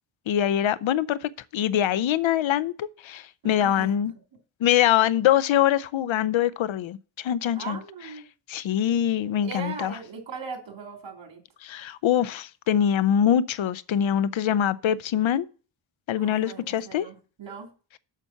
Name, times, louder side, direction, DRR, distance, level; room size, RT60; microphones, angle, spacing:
voice 1, 0.3-4.1 4.6-7.8 8.5-9.9 11.6-15.5 16.1-17.1, left 10 dB, 85° left, 0.6 m, -24 dB
voice 2, 3.4-4.1 7.5-8.3 9.4-11.4 16.2-17.7, right 5 dB, 70° right, 2.8 m, -39 dB
7.4 x 6.7 x 5.7 m
cardioid pair, 85°, 46 cm